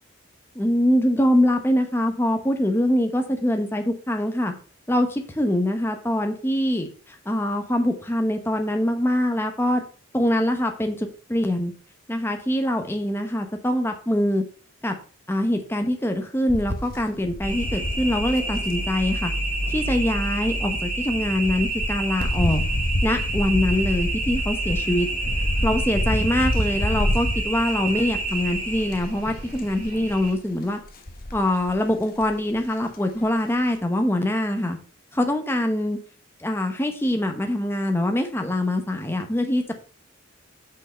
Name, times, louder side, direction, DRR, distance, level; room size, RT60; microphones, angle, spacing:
voice 1, 0.5-4.5 4.9-9.8 10.1-11.7 12.1-14.4 14.8-14.9 15.3-19.3 19.7-22.6 23.0-25.1 25.6-30.8 31.3-34.8 35.1-36.0 36.4-39.7, left 1 dB, 10° left, 5 dB, 1.0 m, -24 dB
sound 1, 16.5-18.7 19.9-28.5 28.9-29.2 29.5-30.0 30.9-31.7 32.2-32.3 32.6-32.7, left 1 dB, 45° left, 1.2 m, -28 dB
sound 2, 17.4-30.3, right 2 dB, 40° right, 3.4 m, -29 dB
6.3 x 5.5 x 5.5 m, 0.41 s
head